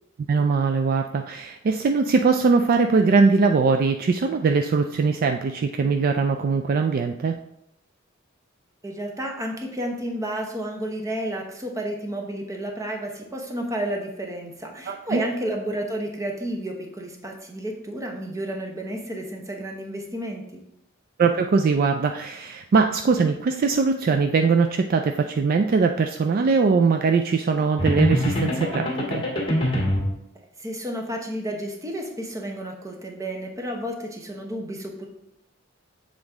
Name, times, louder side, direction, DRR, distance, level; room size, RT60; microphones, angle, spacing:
voice 1, 0.3-7.4 14.9-15.2 21.2-29.3, right 4 dB, 45° right, 5 dB, 0.3 m, -21 dB
voice 2, 8.8-20.6 30.6-35.1, right 1 dB, 15° right, 2 dB, 0.9 m, -31 dB
sound 1, 27.8-30.1, equal, 25° left, 1.5 m, -23 dB
7.1 x 3.8 x 3.5 m, 0.83 s
head